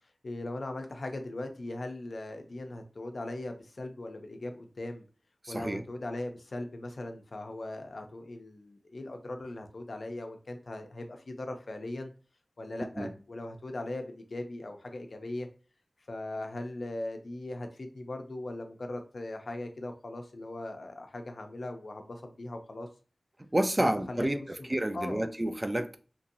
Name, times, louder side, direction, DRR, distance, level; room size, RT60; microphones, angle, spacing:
voice 1, 0.2-5.0 5.5-12.1 12.6-15.5 16.1-22.9 23.8-24.7 24.9-25.3, left 2 dB, 65° left, 0.5 m, -39 dB
voice 2, 5.4-5.8 13.0-13.1 23.5-26.0, right 1 dB, 25° right, 0.3 m, -30 dB
2.9 x 2.6 x 2.6 m
wide cardioid pair, 85°, 0 cm